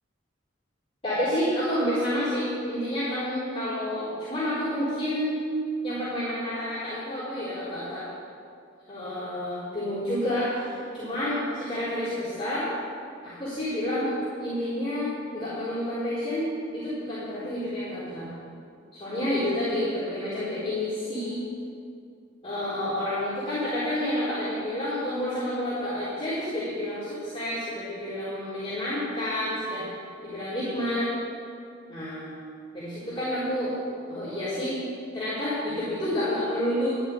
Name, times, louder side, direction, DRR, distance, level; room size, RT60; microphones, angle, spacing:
voice 1, 1.0-5.4 5.8-8.1 8.9-12.7 13.2-18.3 18.9-21.4 22.4-29.9 30.2-31.1 31.9-32.3 32.7-33.8 34.1-34.8 35.1-37.0, left 1 dB, 30° left, -12 dB, 4.3 m, -29 dB
12.0 x 8.2 x 9.6 m, 2.4 s
head